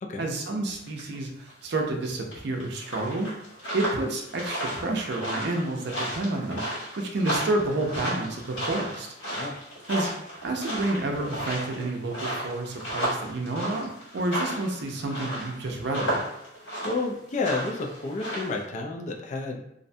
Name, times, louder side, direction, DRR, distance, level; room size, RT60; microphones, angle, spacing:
voice 1, 0.2-3.3 3.7-6.6 7.0-9.1 9.9-10.1 10.4-13.9 14.1-16.2, right 2 dB, 60° right, 2 dB, 0.5 m, -29 dB
sound 1, 0.9-1.1 1.5-1.7 2.3-18.6, right 1 dB, 90° left, 1.3 m, -34 dB
voice 2, 16.8-19.6, left 3 dB, 40° left, 2 dB, 0.4 m, -30 dB
2.5 x 2.1 x 2.6 m, 0.77 s
head